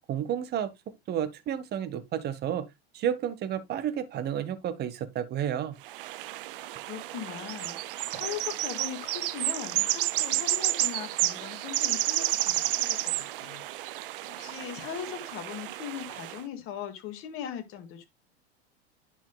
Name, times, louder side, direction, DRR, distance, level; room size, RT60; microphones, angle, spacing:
voice 1, 0.1-0.7 1.1-2.7 2.9-5.7, right 9 dB, 30° right, 1.2 m, -31 dB
sound 1, 5.8-16.4, right 16 dB, 55° right, 0.7 m, -31 dB
voice 2, 6.9-13.6 14.3-18.1, left 9 dB, 40° left, 2.0 m, -40 dB
10.5 x 5.8 x 2.3 m
figure-of-eight pair, 85°, 32 cm